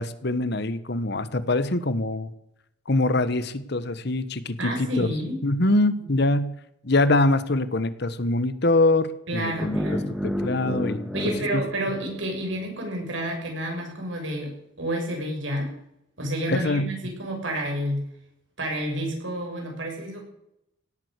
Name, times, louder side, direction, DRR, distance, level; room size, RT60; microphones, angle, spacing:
voice 1, 0.0-2.3 2.9-5.1 5.4-6.5 6.8-9.8 10.2-11.1 11.5-11.6 16.5-16.9, left 2 dB, 55° left, 14 dB, 1.2 m, -24 dB
voice 2, 4.6-5.4 6.0-6.1 9.3-10.1 11.1-15.7 16.2-18.0 18.6-20.2, right 1 dB, 75° right, 1 dB, 6.6 m, -30 dB
sound 1, 9.6-12.7, equal, ahead, 1.8 m, -31 dB
17.5 x 9.1 x 8.1 m, 0.80 s
head